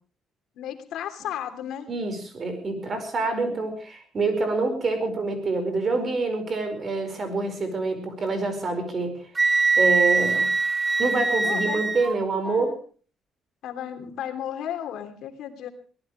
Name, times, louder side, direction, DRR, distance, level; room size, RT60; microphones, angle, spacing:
voice 1, 0.5-1.9 11.4-11.8 12.4-12.8 13.6-15.7, left 10 dB, 80° left, 6 dB, 3.0 m, -34 dB
voice 2, 1.9-9.2 9.8-10.5 11.0-12.7, right 3 dB, 35° right, 8 dB, 5.0 m, -26 dB
Wind instrument woodwind instrument, 9.4-12.2, right 4 dB, 20° right, 1.1 m, -22 dB
24.0 x 18.5 x 3.2 m, 0.40 s
cardioid pair, 150°, 0 cm